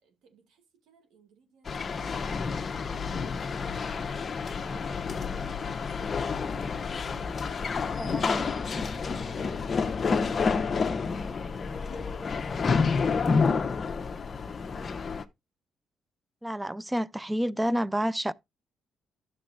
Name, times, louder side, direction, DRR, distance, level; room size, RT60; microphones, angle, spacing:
voice 1, 0.0-3.1 4.5-5.1 8.9-9.7 10.0-11.9 12.4-14.2 14.5-14.9, right 5 dB, 85° right, 2.4 m, -59 dB
sound 1, 1.7-15.2, left 5 dB, 40° left, 0.8 m, -29 dB
voice 2, 8.0-8.5 16.4-18.3, equal, 10° right, 0.4 m, -29 dB
12.0 x 7.0 x 2.5 m
cardioid pair, 90°, 0 cm